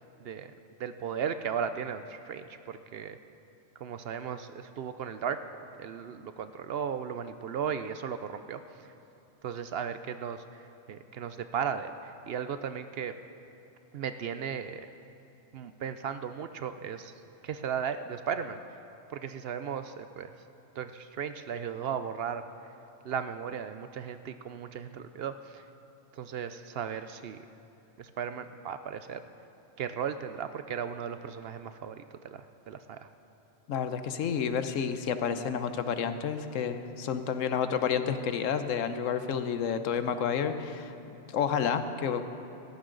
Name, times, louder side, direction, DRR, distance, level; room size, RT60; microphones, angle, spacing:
voice 1, 0.2-0.5 0.8-3.2 3.8-5.4 5.7-8.9 9.4-13.2 13.9-14.9 15.5-17.1 17.4-18.6 19.1-20.3 20.8-22.4 23.0-25.6 26.1-27.4 28.0-29.2 29.8-32.0 32.3-33.1, right 7 dB, 65° right, 10 dB, 0.7 m, -36 dB
voice 2, 33.7-40.9 41.3-42.2, left 7 dB, 85° left, 9 dB, 1.1 m, -30 dB
18.0 x 14.5 x 3.9 m, 2.9 s
omnidirectional pair, 1.3 m